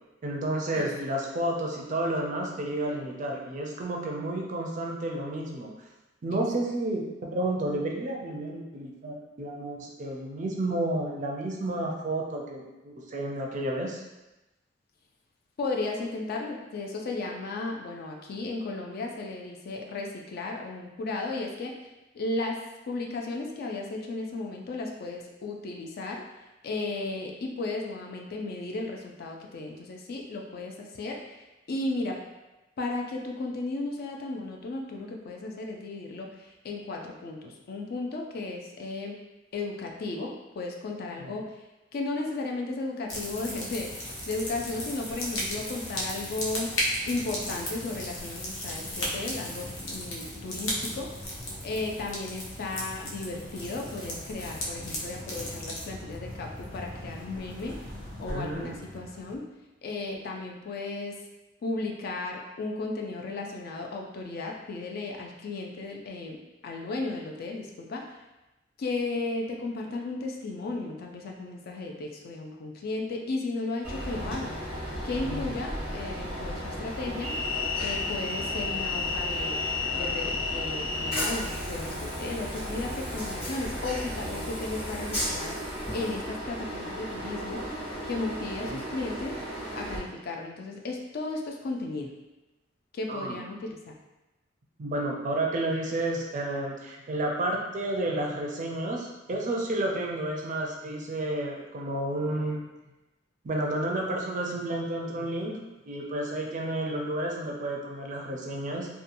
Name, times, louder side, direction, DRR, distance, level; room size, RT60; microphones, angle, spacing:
voice 1, 0.2-5.7 6.2-14.0 41.2-41.3 58.3-58.7 75.2-75.5 88.6-88.8 93.1-93.4 94.8-102.6 103.4-105.6 105.9-108.9, right 1 dB, 40° right, 0 dB, 0.4 m, -31 dB
voice 2, 15.6-21.8 22.1-26.2 26.6-32.2 32.8-39.2 39.5-41.6 41.9-46.8 47.0-51.1 51.6-57.8 58.2-59.5 59.8-61.2 61.6-68.2 68.8-74.5 75.0-77.3 77.8-79.6 79.9-85.6 85.9-87.7 88.1-89.4 89.7-92.1 92.9-93.9, left 3 dB, 55° left, 1 dB, 0.4 m, -35 dB
sound 1, 43.1-59.4, equal, 90° left, 0.6 m, -36 dB
Train, 73.8-90.0, left 1 dB, 30° left, 1.1 m, -33 dB
2.7 x 2.2 x 2.5 m, 1.0 s
head